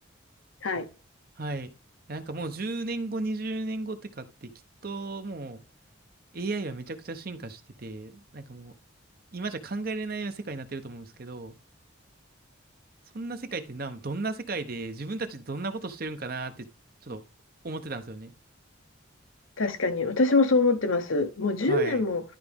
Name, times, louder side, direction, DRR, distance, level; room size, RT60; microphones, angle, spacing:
voice 1, 1.4-1.7 2.1-4.5 4.8-5.6 6.3-8.7 9.3-11.6 13.1-16.7 17.0-17.2 17.6-18.3 21.6-22.0, right 3 dB, 45° right, 0.8 m, -34 dB
voice 2, 19.6-22.2, left 3 dB, 75° left, 1.0 m, -24 dB
12.0 x 4.7 x 3.6 m
head